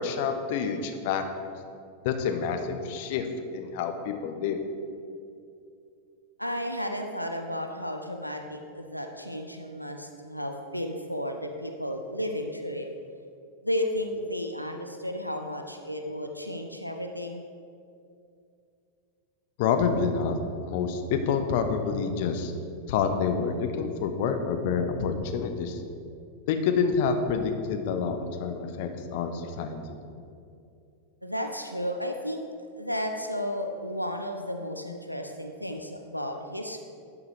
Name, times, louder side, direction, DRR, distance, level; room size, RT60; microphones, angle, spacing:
voice 1, 0.0-1.5 2.0-3.3 3.5-4.6 19.6-20.4 20.6-22.5 22.9-25.8 26.5-30.0, left 6 dB, 50° left, 7 dB, 0.6 m, -28 dB
voice 2, 6.4-12.9 13.6-17.4 31.2-32.4 32.7-36.8, equal, 90° left, 4 dB, 0.4 m, -33 dB
11.0 x 4.8 x 3.2 m, 2.5 s
figure-of-eight pair, 90°, 0 cm